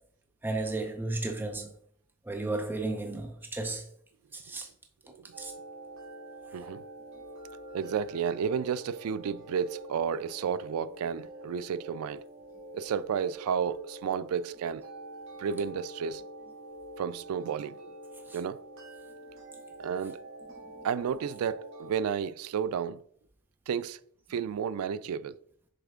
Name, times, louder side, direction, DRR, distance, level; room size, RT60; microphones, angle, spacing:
voice 1, 0.4-1.7 2.3-3.8 4.3-4.7 5.4-5.5 18.3-18.4, right 2 dB, 10° right, 0.5 m, -33 dB
sound 1, 5.3-22.1, right 1 dB, 60° right, 2.0 m, -46 dB
voice 2, 7.7-12.2 12.7-14.8 15.4-16.2 17.0-17.9 18.3-18.6 19.8-20.2 20.8-23.0 23.7-24.0 24.3-25.4, right 7 dB, 90° right, 0.3 m, -32 dB
6.7 x 4.3 x 3.7 m
head